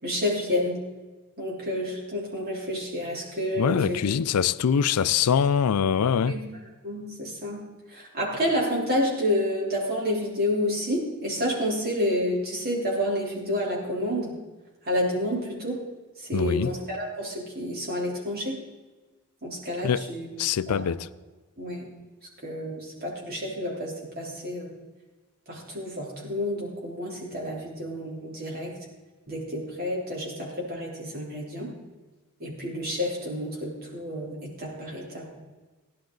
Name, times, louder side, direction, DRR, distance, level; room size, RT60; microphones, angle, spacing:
voice 1, 0.0-0.8 1.4-4.0 6.2-6.4 6.8-7.6 7.9-14.3 14.8-15.8 16.2-18.6 19.4-20.3 20.7-20.9 21.6-21.9 22.4-24.7 25.5-28.7 29.3-31.7 32.4-35.4, left 1 dB, 45° right, 3.4 m, -29 dB
voice 2, 3.6-6.4 16.3-16.7 19.8-20.0 20.4-21.1, left 7 dB, 85° left, 0.4 m, -23 dB
16.0 x 11.0 x 3.9 m
head